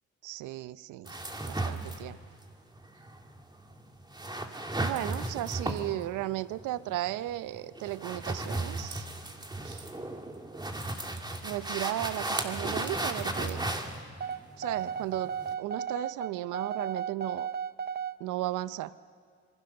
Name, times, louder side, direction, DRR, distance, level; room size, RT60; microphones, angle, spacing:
voice 1, 0.2-1.2 1.5-2.2 4.8-9.1 9.6-9.9 11.4-13.6 14.6-17.5 18.2-19.0, right 15 dB, 85° right, 16 dB, 0.7 m, -35 dB
sound 1, 1.1-15.5, right 2 dB, 15° right, 2.3 m, -36 dB
sound 2, 14.2-18.2, right 7 dB, 30° right, 0.8 m, -34 dB
26.5 x 23.0 x 6.8 m, 2.2 s
cardioid pair, 90°, 30 cm